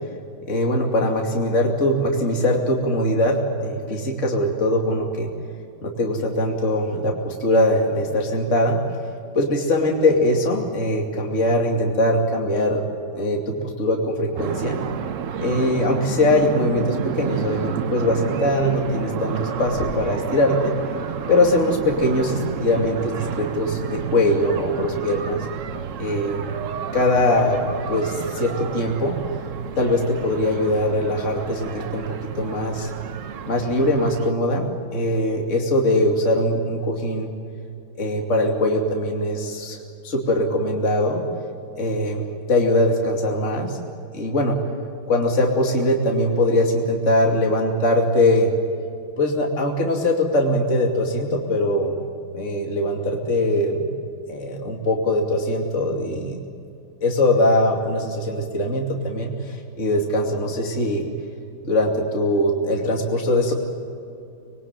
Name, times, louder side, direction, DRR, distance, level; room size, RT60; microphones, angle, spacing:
voice 1, 0.5-5.3 5.8-8.8 9.3-12.8 13.1-14.8 15.4-20.7 21.3-25.4 26.0-26.5 26.9-27.6 27.9-29.2 29.8-32.1 32.4-32.9 33.5-37.3 38.0-39.8 40.0-41.2 41.8-43.8 44.1-44.6 45.1-48.5 49.2-51.9 52.3-53.9 54.3-56.4 57.0-61.1 61.6-63.5, left 1 dB, 35° left, 1 dB, 2.9 m, -21 dB
sound 1, 14.4-34.3, right 8 dB, 65° right, 0.7 m, -31 dB
25.5 x 22.0 x 9.3 m, 2.6 s
omnidirectional pair, 2.4 m